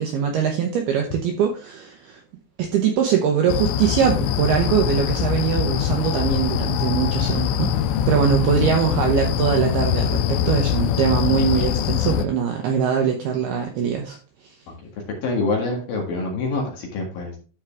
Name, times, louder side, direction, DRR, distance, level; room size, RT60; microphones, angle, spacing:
voice 1, 0.0-2.2 2.6-7.7 8.1-14.2, right 7 dB, 75° right, 2 dB, 2.4 m, -22 dB
sound 1, 3.5-12.3, left 9 dB, 85° left, 2.6 m, -23 dB
voice 2, 15.2-17.4, left 3 dB, 55° left, 0 dB, 3.1 m, -25 dB
12.5 x 4.8 x 3.4 m, 0.36 s
omnidirectional pair, 5.8 m